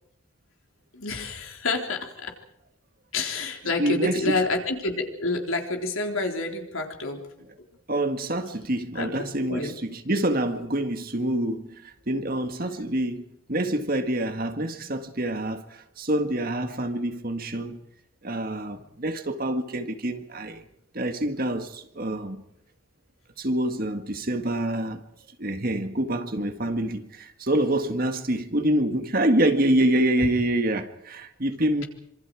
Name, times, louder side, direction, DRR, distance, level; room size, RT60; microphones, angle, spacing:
voice 1, 0.9-2.3 3.1-7.2 9.0-9.1 9.5-9.7 30.2-30.3, left 2 dB, 80° left, 3.9 m, -28 dB
voice 2, 3.8-4.4 7.9-13.2 13.5-17.8 18.2-20.6 20.9-22.4 23.4-25.0 25.4-31.8, right 1 dB, 45° right, 1.8 m, -26 dB
26.5 x 25.0 x 4.8 m
head